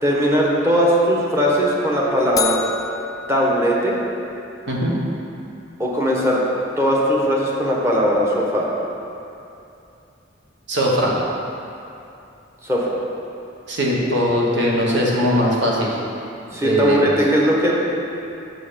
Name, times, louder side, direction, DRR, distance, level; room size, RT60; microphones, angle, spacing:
voice 1, 0.0-2.6 3.3-4.0 5.8-6.4 6.8-8.7 12.6-12.9 16.5-17.7, equal, 15° right, -4 dB, 1.2 m, -19 dB
sound 1, 2.4-4.5, left 7 dB, 20° left, 0.3 m, -30 dB
voice 2, 10.7-11.2 13.7-16.0 16.6-17.1, equal, 65° right, -3 dB, 1.4 m, -20 dB
6.8 x 6.2 x 5.1 m, 2.7 s
head